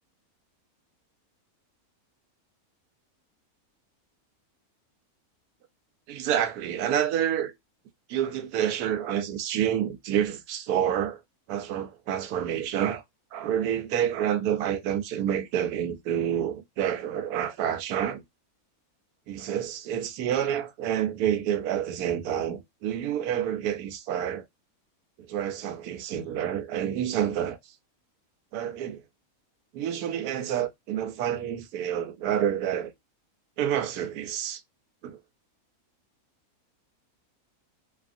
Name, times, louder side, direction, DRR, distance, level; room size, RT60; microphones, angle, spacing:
voice 1, 6.1-7.5 8.1-11.2 11.5-13.0 13.3-18.2 19.3-24.4 25.2-27.6 28.5-29.0 29.7-32.9 33.6-34.6 35.0-35.2, right 10 dB, 85° right, 1.1 m, -28 dB
2.7 x 2.4 x 2.4 m
omnidirectional pair, 1.6 m